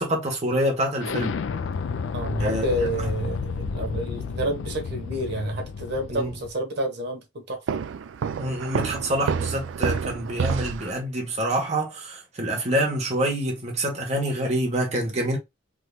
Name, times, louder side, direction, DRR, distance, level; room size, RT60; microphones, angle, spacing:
voice 1, 0.0-1.4 2.4-2.6 6.1-6.3 8.4-15.4, right 1 dB, 35° right, 1.2 m, -26 dB
Explosion, 1.0-6.5, left 5 dB, 80° left, 0.4 m, -31 dB
voice 2, 2.1-7.8, right 1 dB, 60° right, 1.0 m, -29 dB
Walk footsteps, 7.7-11.0, right 6 dB, 80° right, 0.3 m, -28 dB
3.6 x 3.0 x 2.2 m
head